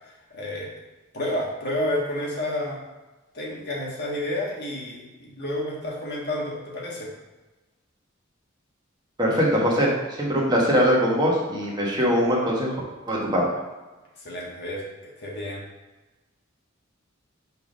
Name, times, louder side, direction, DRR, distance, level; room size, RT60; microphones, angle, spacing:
voice 1, 0.0-0.7 1.1-2.8 3.3-7.1 14.2-15.6, left 1 dB, 55° left, -3 dB, 1.4 m, -30 dB
voice 2, 9.2-9.9 10.2-12.7 13.1-13.4, equal, 20° right, -4 dB, 1.3 m, -21 dB
5.7 x 3.6 x 5.1 m, 1.2 s
head